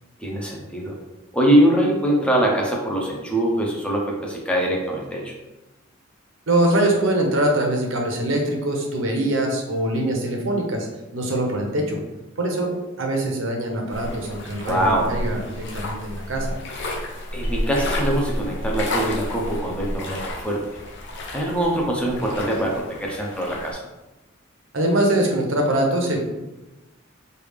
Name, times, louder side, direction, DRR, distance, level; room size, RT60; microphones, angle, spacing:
voice 1, 0.2-1.0 1.3-5.3 14.7-15.1 17.3-20.6 21.3-23.9, right 1 dB, 5° left, -2 dB, 0.5 m, -23 dB
voice 2, 6.5-10.9 11.1-12.0 12.4-12.7 13.0-16.5 24.7-26.2, right 1 dB, 75° right, 1 dB, 0.7 m, -23 dB
sound 1, 13.9-23.7, left 1 dB, 65° left, 0.6 m, -31 dB
3.2 x 2.3 x 3.3 m, 1.0 s
head